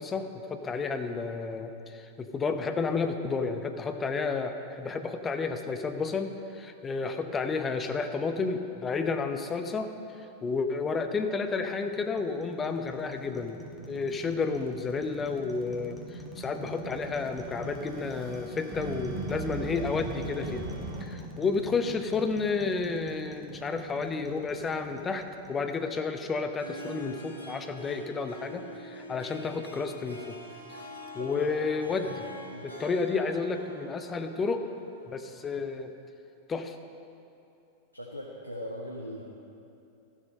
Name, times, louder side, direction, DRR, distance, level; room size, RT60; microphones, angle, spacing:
voice 1, 0.0-9.9 10.4-13.6 13.9-20.7 21.0-25.2 25.5-30.4 31.1-32.2 32.6-34.7 35.1-35.9 36.5-36.8, left 4 dB, 20° left, 7 dB, 0.8 m, -31 dB
sound 1, 11.5-26.7, right 2 dB, 5° left, 1.5 m, -45 dB
sound 2, 16.2-21.0, right 4 dB, 30° right, 1.3 m, -40 dB
Harp, 26.4-35.1, right 1 dB, 85° left, 1.5 m, -45 dB
voice 2, 31.1-31.5 31.8-32.1 32.5-32.7 37.9-39.2, equal, 90° right, -2 dB, 0.9 m, -41 dB
13.5 x 7.4 x 5.4 m, 2.7 s
figure-of-eight pair, 90°, 0 cm